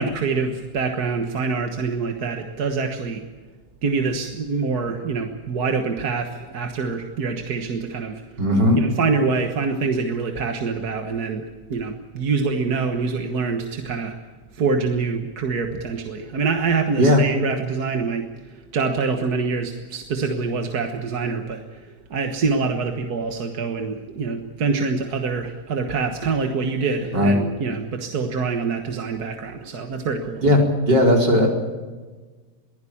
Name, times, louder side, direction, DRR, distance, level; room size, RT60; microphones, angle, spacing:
voice 1, 0.0-3.2 3.8-8.2 8.8-14.2 14.5-30.4, right 4 dB, 65° right, 4 dB, 1.9 m, -25 dB
voice 2, 8.4-8.8 17.0-17.2 27.1-27.4 30.4-30.6 30.9-31.5, equal, 80° right, 0 dB, 5.4 m, -16 dB
23.0 x 16.0 x 8.6 m, 1.3 s
omnidirectional pair, 1.8 m